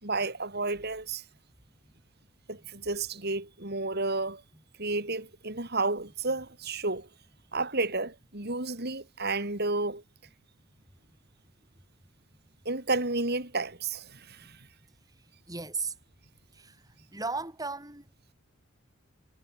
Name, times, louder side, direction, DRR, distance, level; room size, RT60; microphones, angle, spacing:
voice 1, 0.0-1.2 2.5-4.4 4.8-7.1 7.5-10.0 12.6-14.7, right 3 dB, 50° right, 4.3 m, -31 dB
voice 2, 15.5-15.9 16.5-16.8 17.1-18.0, right 4 dB, 15° right, 4.3 m, -35 dB
head